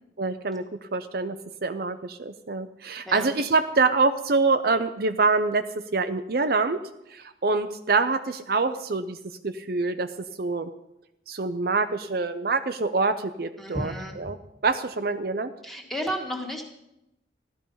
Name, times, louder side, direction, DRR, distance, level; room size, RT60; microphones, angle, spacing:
voice 1, 0.2-1.4 1.6-5.6 5.9-6.8 7.1-9.2 9.4-10.1 10.4-10.7 11.3-14.4 14.6-15.5, right 3 dB, 50° right, 8 dB, 0.6 m, -25 dB
voice 2, 13.6-14.2 15.6-16.6, equal, ahead, 1 dB, 1.9 m, -32 dB
15.5 x 12.5 x 5.5 m, 0.86 s
head